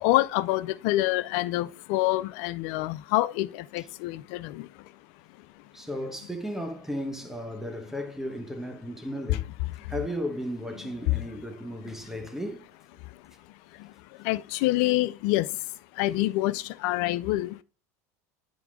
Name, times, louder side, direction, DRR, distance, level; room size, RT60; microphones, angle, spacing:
voice 1, 0.0-4.7 14.2-15.5 16.0-17.6, left 17 dB, 65° left, 0.5 m, -26 dB
voice 2, 5.7-9.5 9.9-12.7 16.0-16.2, equal, 5° right, 1.0 m, -35 dB
10.0 x 3.9 x 4.8 m
supercardioid pair, 105°, 9 cm